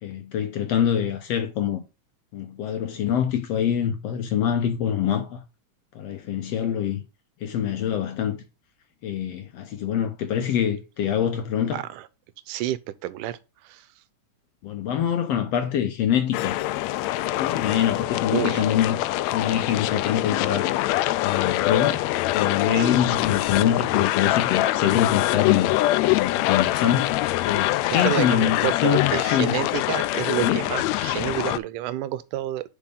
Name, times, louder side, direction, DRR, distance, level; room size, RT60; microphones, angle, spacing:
voice 1, 0.0-1.8 2.3-5.4 5.9-7.0 7.4-8.4 9.0-11.8 14.6-16.6 17.4-20.7 21.2-25.7 26.1-29.6 30.4-30.7, left 9 dB, 70° left, 1.6 m, -25 dB
voice 2, 11.7-12.1 12.5-13.9 18.3-18.6 22.7-23.0 28.0-32.7, right 14 dB, 85° right, 2.3 m, -29 dB
sound 1, 16.3-31.6, left 16 dB, 90° left, 1.5 m, -24 dB
7.1 x 5.3 x 3.7 m
omnidirectional pair, 3.6 m